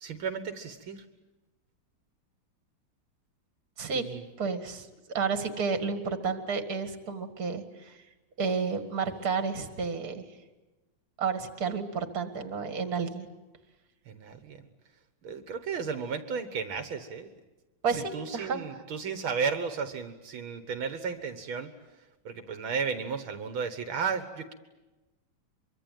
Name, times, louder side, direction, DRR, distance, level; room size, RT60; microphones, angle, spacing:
voice 1, 0.0-1.0 3.9-4.2 14.1-14.6 15.2-17.3 17.9-21.7 22.3-24.5, right 6 dB, 80° right, 8 dB, 2.2 m, -34 dB
voice 2, 4.4-8.0 8.4-10.2 11.2-13.3 17.8-18.8, right 5 dB, 50° right, 8 dB, 2.4 m, -31 dB
24.5 x 24.0 x 9.1 m, 1.1 s
omnidirectional pair, 2.2 m